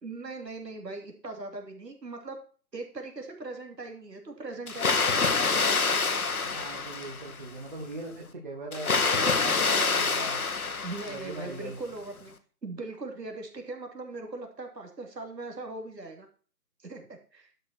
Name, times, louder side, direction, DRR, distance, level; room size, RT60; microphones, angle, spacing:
voice 1, 0.0-2.4 2.7-5.4 10.8-12.3 12.6-16.3 16.8-17.1 17.3-17.5, right 3 dB, 75° right, 3 dB, 3.2 m, -40 dB
Water, 4.7-7.5 8.7-11.5, left 4 dB, 60° left, 1.3 m, -27 dB
voice 2, 6.4-10.4 11.0-11.8, right 2 dB, 30° right, -1 dB, 1.4 m, -40 dB
12.0 x 6.0 x 4.5 m, 0.41 s
figure-of-eight pair, 170°, 49 cm